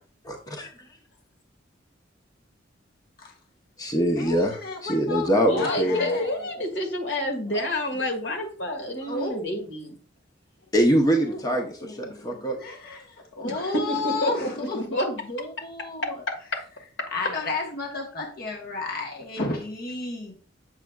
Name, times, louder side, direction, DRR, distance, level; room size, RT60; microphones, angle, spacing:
voice 1, 0.2-0.9 3.8-6.2 7.5-7.6 9.0-9.2 10.7-12.6, equal, 20° left, 0.7 m, -24 dB
voice 2, 4.2-5.3 5.6-6.5 9.1-9.4 11.2-16.1 17.1-20.4, left 3 dB, 50° left, 1.1 m, -33 dB
voice 3, 5.3-9.9 13.4-15.1, left 1 dB, 70° left, 1.7 m, -29 dB
7.4 x 6.0 x 2.3 m
head